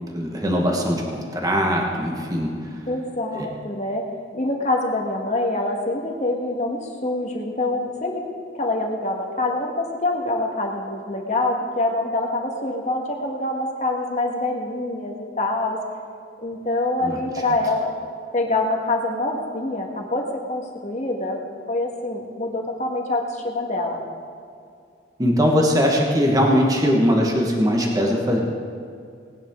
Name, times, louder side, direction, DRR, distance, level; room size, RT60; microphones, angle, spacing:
voice 1, 0.1-2.5 3.3-3.5 17.0-17.2 25.2-28.4, equal, 20° right, -1 dB, 1.4 m, -20 dB
voice 2, 2.9-4.0 4.3-8.2 8.5-15.8 16.4-17.9 18.3-21.4 21.7-24.0, left 2 dB, 35° left, 0 dB, 1.6 m, -25 dB
19.0 x 10.0 x 3.8 m, 2.3 s
head